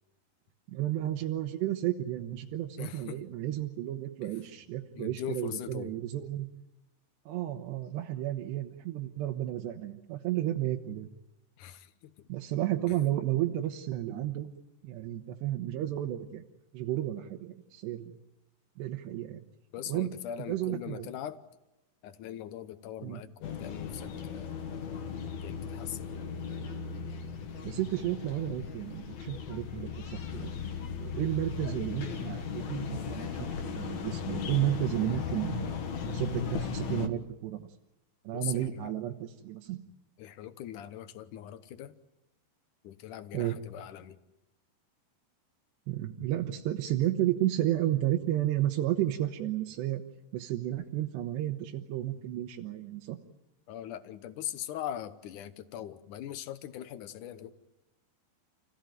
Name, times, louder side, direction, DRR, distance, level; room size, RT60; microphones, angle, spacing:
voice 1, 0.7-6.5 7.3-11.1 12.3-14.5 14.8-16.4 16.7-18.2 18.8-19.4 19.9-20.1 20.5-21.1 23.0-23.2 27.6-30.5 31.0-35.7 36.1-37.7 38.2-39.8 43.3-43.6 45.9-50.0 50.3-53.2, right 13 dB, 80° right, 3 dB, 3.2 m, -32 dB
voice 2, 2.8-3.2 4.2-4.3 4.9-6.0 11.6-12.3 12.9-13.0 19.7-21.4 22.0-24.6 25.4-26.3 38.3-38.9 40.2-41.9 42.8-44.2 53.7-57.5, left 11 dB, 70° left, 11 dB, 1.9 m, -41 dB
sound 1, 23.4-37.1, left 6 dB, 55° left, 2.3 m, -37 dB
30.0 x 17.0 x 9.2 m, 0.99 s
omnidirectional pair, 5.0 m